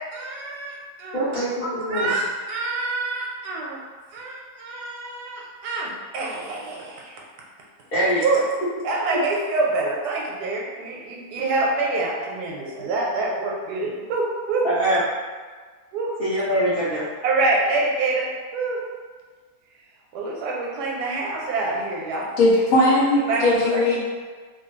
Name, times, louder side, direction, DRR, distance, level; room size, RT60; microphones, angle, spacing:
voice 1, 0.1-1.4 1.9-3.8 4.1-7.2 8.2-8.4 8.8-14.6 15.9-16.1 17.2-18.3 18.5-18.8 20.1-22.3 23.1-23.8, right 3 dB, 85° right, -3 dB, 1.2 m, -26 dB
voice 2, 1.1-2.1 7.9-8.2 14.6-15.0 16.2-17.0, right 1 dB, 40° left, -14 dB, 1.0 m, -23 dB
voice 3, 22.4-24.0, left 1 dB, 70° left, -6 dB, 1.2 m, -18 dB
2.9 x 2.3 x 3.0 m, 1.5 s
omnidirectional pair, 1.7 m